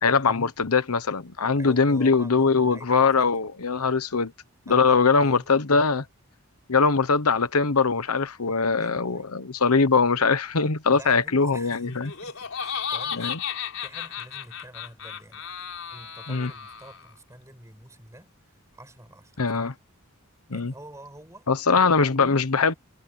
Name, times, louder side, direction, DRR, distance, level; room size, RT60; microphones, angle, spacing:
voice 1, 0.0-4.3 4.7-6.0 6.7-12.1 13.1-13.4 16.3-16.5 19.4-19.7 20.5-20.7 21.5-22.7, left 4 dB, 90° left, 1.1 m, -22 dB
voice 2, 1.5-3.4 4.7-5.6 8.8-9.3 10.9-19.4 20.5-21.5, right 1 dB, 15° right, 7.2 m, -47 dB
Laughter, 11.9-17.1, left 7 dB, 65° left, 4.8 m, -34 dB
head